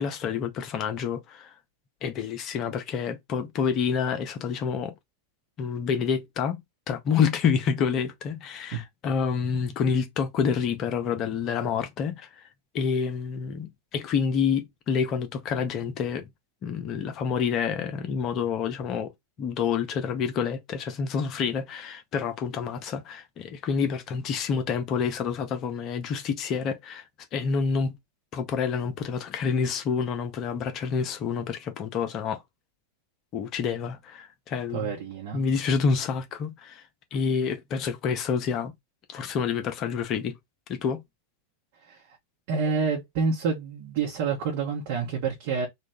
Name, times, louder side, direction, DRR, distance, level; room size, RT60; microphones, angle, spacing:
voice 1, 0.0-1.5 2.0-4.9 5.6-12.5 12.7-16.3 16.6-19.1 19.4-27.0 27.3-28.0 28.3-32.4 33.3-35.0 35.3-36.8 37.1-38.7 39.1-40.3 40.7-41.0, left 6 dB, 35° left, 0.6 m, -28 dB
voice 2, 34.7-35.4 41.8-42.0 42.5-45.7, right 5 dB, 50° right, 0.9 m, -28 dB
3.0 x 2.3 x 3.4 m
figure-of-eight pair, 90°, 0 cm